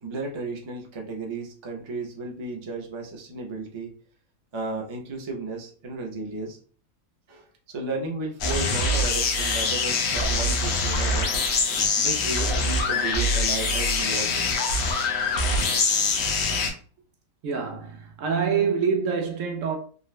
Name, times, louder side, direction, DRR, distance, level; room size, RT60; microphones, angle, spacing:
voice 1, 0.0-3.9 4.5-6.6 7.3-11.3 12.0-14.5, right 3 dB, 50° right, 0.3 m, -34 dB
sound 1, 8.4-16.7, left 3 dB, 85° left, 1.2 m, -24 dB
voice 2, 17.4-19.8, right 6 dB, 70° right, 0.9 m, -26 dB
3.8 x 2.1 x 2.3 m
omnidirectional pair, 1.5 m